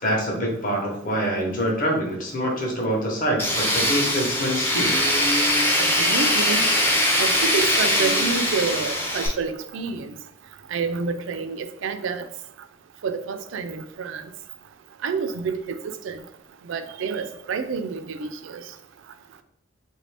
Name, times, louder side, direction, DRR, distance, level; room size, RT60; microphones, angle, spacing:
voice 1, 0.0-4.9, equal, 40° left, -1 dB, 0.9 m, -25 dB
Tools, 3.4-9.3, left 1 dB, 10° left, 0.4 m, -21 dB
voice 2, 5.8-6.7 7.2-10.1 10.7-12.3 13.0-14.2 15.0-15.8 16.0-16.2 16.7-18.6, right 5 dB, 60° right, 9 dB, 0.3 m, -28 dB
3.5 x 2.6 x 3.3 m, 0.76 s
head